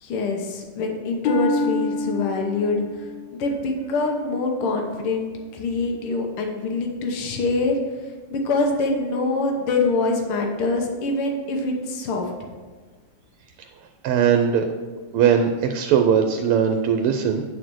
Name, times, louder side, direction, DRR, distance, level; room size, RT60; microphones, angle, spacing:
voice 1, 0.0-7.8 8.3-12.3, left 3 dB, 80° left, 2 dB, 1.9 m, -25 dB
Harp, 1.2-5.0 5.5-5.9 6.6-6.7, left 2 dB, 60° left, 1.8 m, -29 dB
voice 2, 14.0-14.6 15.1-17.4, right 7 dB, 85° right, 6 dB, 1.5 m, -19 dB
9.5 x 4.3 x 6.1 m, 1.4 s
omnidirectional pair, 2.4 m